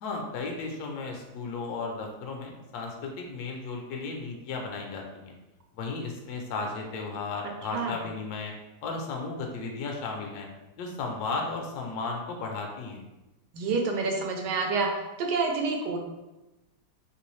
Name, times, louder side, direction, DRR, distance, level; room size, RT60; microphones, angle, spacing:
voice 1, 0.0-5.3 5.7-8.5 8.8-10.5 10.8-13.0, left 3 dB, 70° left, 1 dB, 1.0 m, -34 dB
voice 2, 13.5-14.9 15.2-16.0, right 4 dB, 75° right, 2 dB, 1.2 m, -28 dB
3.1 x 2.9 x 3.1 m, 1.0 s
omnidirectional pair, 1.9 m